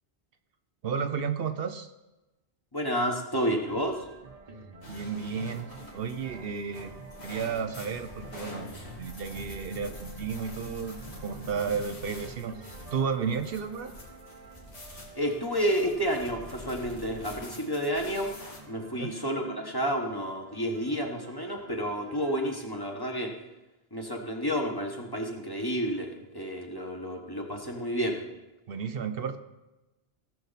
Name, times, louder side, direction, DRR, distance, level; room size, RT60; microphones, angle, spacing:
voice 1, 0.8-1.9 4.9-6.9 7.2-8.7 9.0-13.9 19.0-19.1 28.7-29.4, right 6 dB, 65° right, 9 dB, 0.8 m, -33 dB
voice 2, 2.7-4.1 15.1-18.3 18.7-23.3 23.9-28.2, equal, 20° left, 1 dB, 1.4 m, -30 dB
sound 1, 3.6-23.0, right 3 dB, 40° right, 1.1 m, -50 dB
sound 2, 4.8-18.6, left 1 dB, 90° left, 2.7 m, -46 dB
17.0 x 6.9 x 4.1 m, 1.0 s
omnidirectional pair, 1.1 m